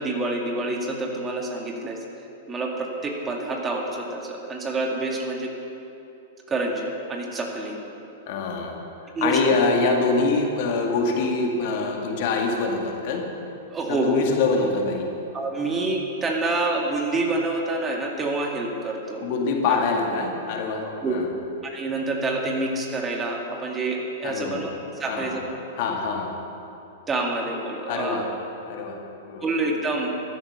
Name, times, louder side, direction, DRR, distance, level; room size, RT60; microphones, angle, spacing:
voice 1, 0.0-2.0 2.5-5.6 6.5-7.8 9.1-9.4 13.7-14.2 15.3-19.2 19.7-19.8 21.0-21.2 21.6-24.7 25.0-25.4 27.1-28.2 29.4-30.2, right 2 dB, 20° right, 1 dB, 2.1 m, -27 dB
voice 2, 8.3-8.9 9.2-13.4 13.9-15.2 19.2-21.3 24.2-24.7 25.1-25.4 25.8-26.3 27.9-28.3 28.6-29.5, left 3 dB, 50° left, 2 dB, 2.0 m, -25 dB
13.5 x 11.5 x 6.6 m, 2.9 s
figure-of-eight pair, 100°, 0 cm